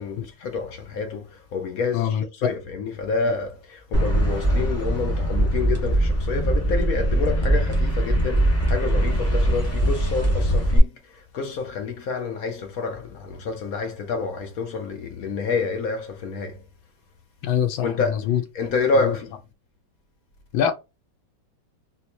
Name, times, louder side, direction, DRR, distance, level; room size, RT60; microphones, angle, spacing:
voice 1, 0.0-2.2 2.4-16.6 17.8-18.2 18.5-19.3, left 4 dB, 65° left, 0.9 m, -28 dB
voice 2, 1.9-2.2 3.2-3.3 17.4-18.4 19.0-19.1 20.5-20.7, left 9 dB, 85° left, 1.5 m, -24 dB
sound 1, 3.9-10.8, right 1 dB, 15° left, 0.6 m, -21 dB
4.2 x 2.2 x 2.8 m
omnidirectional pair, 2.2 m